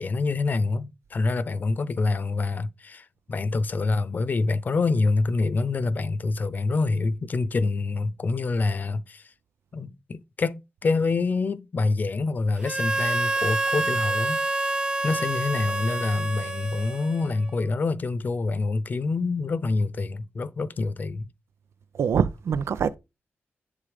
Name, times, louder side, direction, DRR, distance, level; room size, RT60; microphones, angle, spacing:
voice 1, 0.0-9.2 9.7-14.4 15.0-21.3, left 3 dB, 40° left, 0.7 m, -26 dB
Harmonica, 12.6-17.5, right 2 dB, 20° right, 0.5 m, -27 dB
voice 2, 21.9-23.0, right 7 dB, 80° right, 0.7 m, -24 dB
10.5 x 3.9 x 5.1 m
wide cardioid pair, 145°, 4 cm